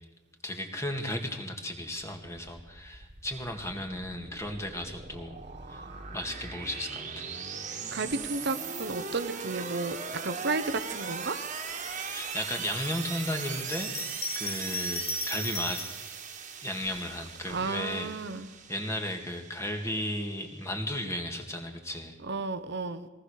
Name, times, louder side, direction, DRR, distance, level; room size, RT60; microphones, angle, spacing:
voice 1, 0.4-5.4 5.7-5.9 6.1-7.3 12.1-13.9 14.4-15.9 16.6-18.1 18.7-22.2, left 1 dB, 15° left, 4 dB, 2.2 m, -35 dB
sound 1, 2.5-20.6, right 6 dB, 35° right, 1.9 m, -39 dB
voice 2, 7.7-11.4 17.5-18.5 22.2-23.1, right 3 dB, 55° right, 10 dB, 1.1 m, -33 dB
Bell, 13.6-16.0 16.8-17.7, left 3 dB, 30° left, 0.9 m, -37 dB
22.5 x 18.5 x 6.6 m, 1.2 s
head